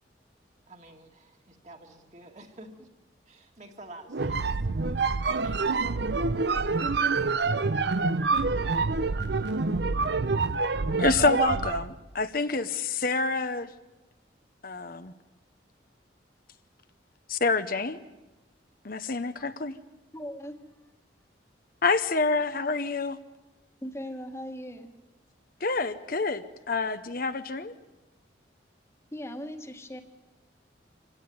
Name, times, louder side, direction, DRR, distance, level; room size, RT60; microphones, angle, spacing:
voice 1, 0.7-2.9 3.3-4.6 5.2-5.9, right 1 dB, 40° right, 4 dB, 2.2 m, -49 dB
sound 1, 4.1-11.9, right 4 dB, 65° right, 0.8 m, -26 dB
voice 2, 11.0-13.7 14.6-15.1 17.3-18.0 18.8-19.7 21.8-23.2 25.6-27.7, left 4 dB, 50° left, 10 dB, 0.9 m, -27 dB
voice 3, 20.1-20.6 23.8-24.9 29.1-30.0, equal, 15° left, 6 dB, 1.6 m, -38 dB
26.0 x 16.5 x 9.5 m, 1.1 s
head